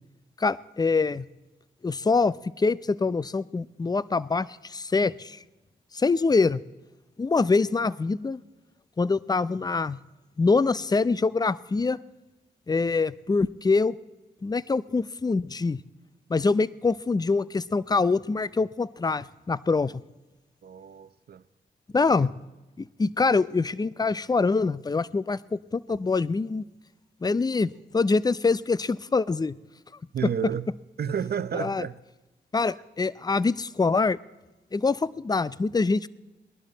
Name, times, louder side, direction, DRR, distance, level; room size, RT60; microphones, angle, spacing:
voice 1, 0.4-1.3 1.8-5.4 5.9-6.6 7.2-8.4 9.0-10.0 10.4-12.0 12.7-14.0 14.4-15.8 16.3-20.0 21.9-22.3 22.8-26.6 27.2-29.6 31.6-31.8 32.5-34.2 34.7-36.1, left 4 dB, 20° left, 0.5 m, -24 dB
voice 2, 20.6-21.4 22.1-22.3 30.1-30.7 31.0-32.0, right 8 dB, 60° right, 0.7 m, -31 dB
19.0 x 11.5 x 4.0 m
cardioid pair, 65°, 19 cm